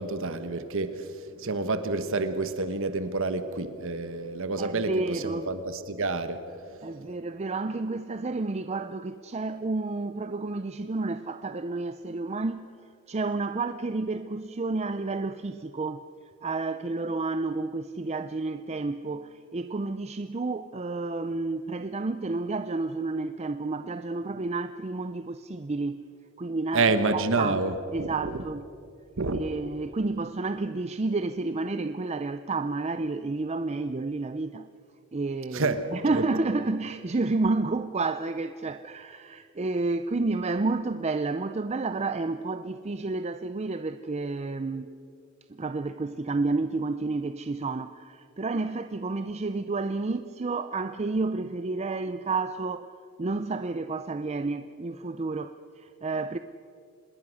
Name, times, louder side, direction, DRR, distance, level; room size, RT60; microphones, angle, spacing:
voice 1, 0.0-6.4 26.7-28.4 29.2-29.4 35.5-36.2, right 3 dB, 60° right, 1.2 m, -28 dB
voice 2, 4.6-5.5 6.8-12.7 13.1-16.1 16.4-26.1 26.4-27.6 27.9-28.7 29.3-34.7 35.1-44.9 45.5-56.4, right 3 dB, 30° right, 0.5 m, -30 dB
26.0 x 21.0 x 6.4 m
head